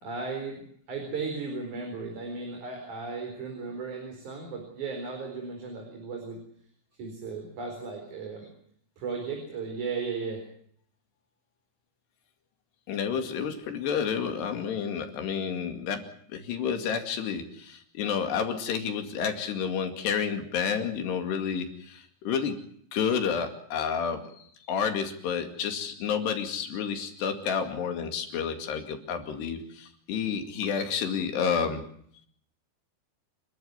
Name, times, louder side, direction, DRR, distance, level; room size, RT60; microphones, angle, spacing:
voice 1, 0.0-0.6 0.9-6.4 7.0-8.5 9.0-10.4, right 4 dB, 45° right, 3 dB, 5.6 m, -35 dB
voice 2, 12.9-22.6 22.9-24.2 24.7-31.8, left 7 dB, 75° left, 6 dB, 4.4 m, -30 dB
29.0 x 12.5 x 9.6 m, 0.64 s
omnidirectional pair, 4.9 m